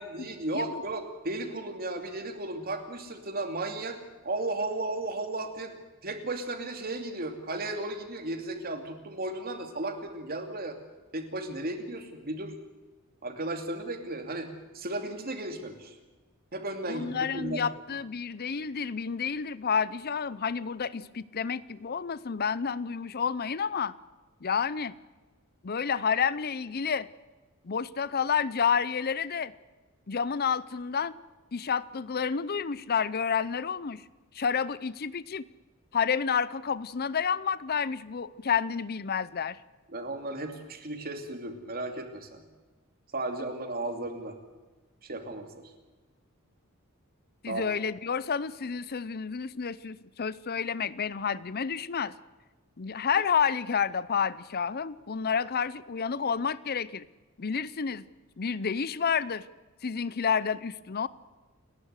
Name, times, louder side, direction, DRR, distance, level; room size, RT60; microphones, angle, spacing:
voice 1, 0.0-4.0 4.2-5.8 6.0-10.8 11.1-12.5 13.2-16.0 16.5-17.7 39.9-42.4 43.1-44.4 45.0-45.7 47.5-47.6, right 2 dB, 45° right, 5 dB, 2.7 m, -35 dB
voice 2, 16.9-23.9 24.4-24.9 25.6-27.1 27.6-29.5 30.1-31.1 31.5-34.0 34.3-35.5 35.9-39.6 47.4-52.1 52.8-57.0 57.4-58.0 58.4-59.4 59.8-61.1, left 6 dB, 45° left, 18 dB, 0.6 m, -30 dB
29.5 x 11.5 x 8.2 m, 1.2 s
head